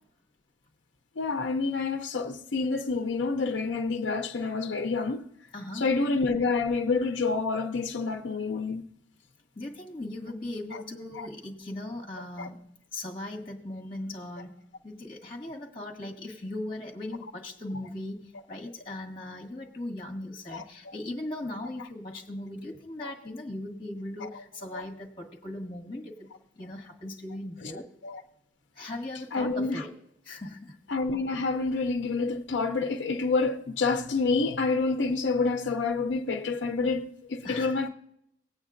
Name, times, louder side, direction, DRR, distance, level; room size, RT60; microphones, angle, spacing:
voice 1, 1.2-5.2 5.7-8.8 10.7-10.8 11.2-11.3 12.4-12.5 20.5-20.6 23.0-23.1 24.2-24.4 24.7-24.8 27.6-28.2 29.3-29.8 30.9-37.9, left 4 dB, 75° left, 0.5 m, -28 dB
voice 2, 5.5-5.9 9.5-12.6 12.9-14.5 14.8-26.3 26.5-27.8 28.7-29.9 30.2-30.8 37.4-37.9, left 1 dB, 30° left, 1.8 m, -38 dB
19.0 x 8.9 x 2.5 m
head